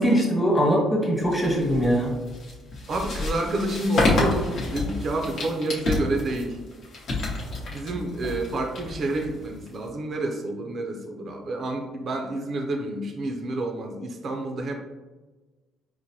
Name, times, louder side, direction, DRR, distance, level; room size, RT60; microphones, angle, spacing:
voice 1, 0.0-2.1, equal, 10° left, -3 dB, 1.2 m, -21 dB
sound 1, 1.2-9.9, left 2 dB, 55° left, 0.9 m, -29 dB
voice 2, 2.9-6.6 7.7-14.7, right 2 dB, 45° right, 3 dB, 0.4 m, -29 dB
4.5 x 2.1 x 2.7 m, 1.2 s
cardioid pair, 105°, 0 cm